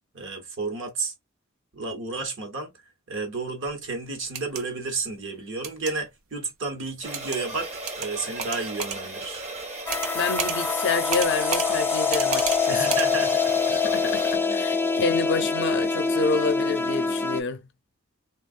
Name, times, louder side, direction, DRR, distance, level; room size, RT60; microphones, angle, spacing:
voice 1, 0.1-1.1 1.7-2.7 3.1-7.7 8.0-9.4 12.7-13.7 14.4-14.7, right 3 dB, 65° right, 1.1 m, -32 dB
sound 1, 4.2-4.6 5.6-5.9 7.1-7.4 7.9-8.1 8.4-9.0 9.9-10.1 10.4-10.6 11.1-11.7 12.1-12.6 12.9-13.1, right 7 dB, 85° right, 0.6 m, -30 dB
sound 2, 7.0-14.4, right 2 dB, 35° right, 0.8 m, -36 dB
sound 3, 9.9-17.4, left 4 dB, 10° left, 0.3 m, -25 dB
voice 2, 10.1-13.0 13.7-17.7, left 4 dB, 55° left, 0.5 m, -28 dB
3.4 x 2.3 x 2.4 m
head